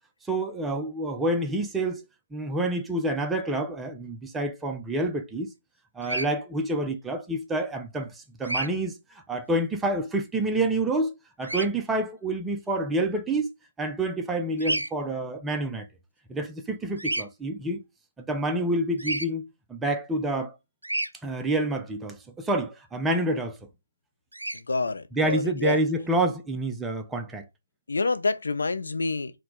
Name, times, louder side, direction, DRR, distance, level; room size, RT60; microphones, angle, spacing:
voice 1, 0.3-2.1 2.3-5.5 6.0-11.1 11.4-13.5 13.8-15.9 16.3-17.8 18.3-19.4 19.7-20.6 21.2-23.6 25.1-27.5, right 2 dB, 5° right, 0.4 m, -28 dB
Bird vocalization bird call bird song, 6.0-6.3 8.4-8.7 11.4-11.7 14.6-14.9 17.0-17.2 19.0-19.3 20.8-21.1 24.3-24.6, right 1 dB, 85° right, 0.5 m, -29 dB
voice 2, 24.5-25.8 27.9-29.3, left 3 dB, 65° left, 0.6 m, -27 dB
4.4 x 2.1 x 3.7 m
figure-of-eight pair, 145°, 0 cm